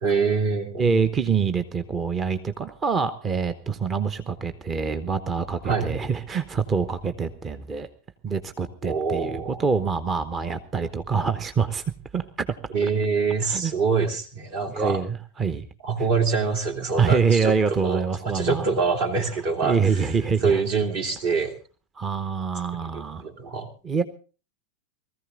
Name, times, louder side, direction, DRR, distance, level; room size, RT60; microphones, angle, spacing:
voice 1, 0.0-0.9 5.6-6.0 8.8-9.6 12.7-15.0 15.8-17.5 17.8-20.1 20.4-21.5 22.7-23.7, right 4 dB, 50° right, 5 dB, 2.7 m, -25 dB
voice 2, 0.8-7.9 8.2-11.8 12.1-12.5 13.4-13.7 14.7-15.7 17.0-18.6 19.6-20.6 22.0-23.2 23.8-24.0, right 5 dB, 20° right, 11 dB, 1.0 m, -25 dB
20.0 x 14.5 x 3.8 m, 0.37 s
figure-of-eight pair, 90°, 0 cm